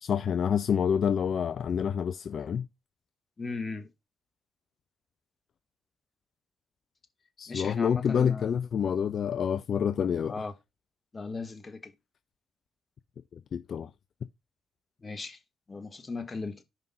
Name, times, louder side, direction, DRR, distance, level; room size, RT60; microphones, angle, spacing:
voice 1, 0.0-2.7 7.4-10.3 13.5-13.9, left 7 dB, 55° left, 0.3 m, -27 dB
voice 2, 3.4-3.9 7.5-8.5 10.3-10.5 11.1-11.9 15.0-15.4 15.7-16.6, left 3 dB, 35° left, 1.2 m, -37 dB
5.2 x 3.6 x 5.2 m
hypercardioid pair, 45°, 0 cm